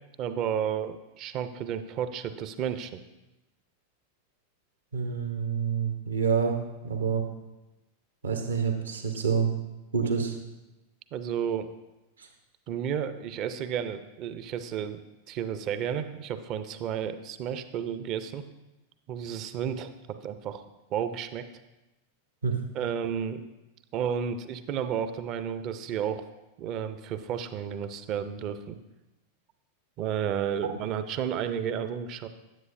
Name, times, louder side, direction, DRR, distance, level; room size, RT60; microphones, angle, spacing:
voice 1, 0.2-3.0 10.0-10.1 11.1-11.7 12.7-15.0 15.3-18.4 19.1-20.6 20.9-21.4 22.7-23.4 23.9-26.3 26.6-28.8 30.0-32.3, right 8 dB, 40° right, 11 dB, 0.5 m, -32 dB
voice 2, 4.9-6.6 6.8-7.2 8.2-9.5 9.9-10.3 12.2-12.3 22.4-22.5, right 6 dB, 70° right, 4 dB, 0.9 m, -27 dB
9.4 x 8.0 x 2.5 m, 1.0 s
figure-of-eight pair, 90°, 0 cm